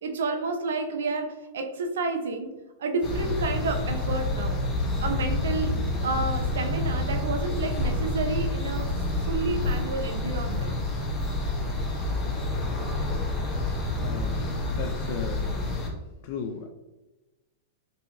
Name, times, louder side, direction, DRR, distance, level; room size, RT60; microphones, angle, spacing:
voice 1, 0.0-2.5 2.8-4.6 5.0-5.7 6.0-8.9 9.2-10.8, right 3 dB, 80° right, 5 dB, 0.6 m, -30 dB
sound 1, 3.0-15.9, left 2 dB, 25° left, 0.8 m, -28 dB
voice 2, 14.0-15.4 16.2-16.7, left 6 dB, 55° left, 3 dB, 0.4 m, -36 dB
4.1 x 2.7 x 2.6 m, 1.1 s
hypercardioid pair, 130°, 0 cm